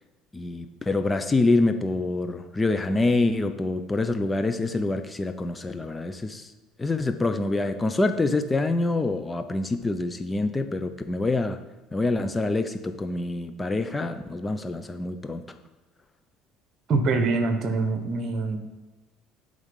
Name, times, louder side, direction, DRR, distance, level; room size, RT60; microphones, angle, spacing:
voice 1, 0.3-6.5 6.8-11.6 11.9-15.5, left 2 dB, 20° left, 8 dB, 0.6 m, -26 dB
voice 2, 16.9-18.6, right 3 dB, 50° right, 7 dB, 1.3 m, -24 dB
10.5 x 3.9 x 5.5 m, 1.1 s
supercardioid pair, 90°, 0 cm